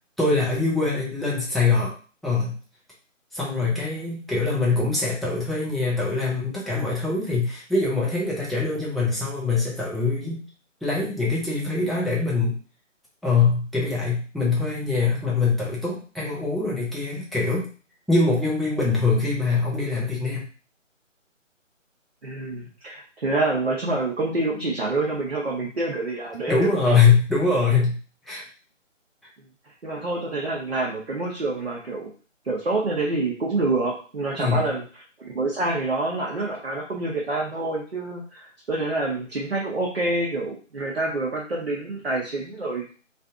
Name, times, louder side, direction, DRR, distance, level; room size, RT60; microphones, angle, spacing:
voice 1, 0.2-1.9 2.2-2.6 3.3-10.4 10.8-12.6 13.2-17.7 18.1-20.5 26.5-28.0 28.3-28.4 34.3-34.6, left 4 dB, ahead, -6 dB, 0.4 m, -23 dB
voice 2, 22.2-26.9 29.8-32.1 32.4-34.8 35.2-42.9, right 2 dB, 55° right, -3 dB, 0.8 m, -27 dB
2.6 x 2.5 x 3.5 m, 0.38 s
figure-of-eight pair, 175°, 39 cm